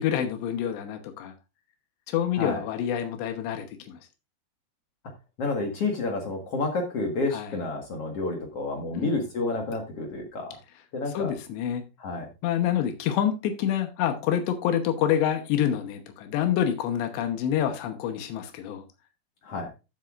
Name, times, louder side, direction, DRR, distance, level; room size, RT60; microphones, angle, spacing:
voice 1, 0.0-1.3 2.1-4.0 7.3-7.5 8.9-9.2 11.1-11.8 12.4-18.8, left 10 dB, 85° left, 6 dB, 3.3 m, -27 dB
voice 2, 5.4-10.6 10.9-11.3 12.0-12.3 19.4-19.7, left 3 dB, 55° left, 3 dB, 1.7 m, -29 dB
13.5 x 7.7 x 2.4 m, 0.28 s
omnidirectional pair, 4.8 m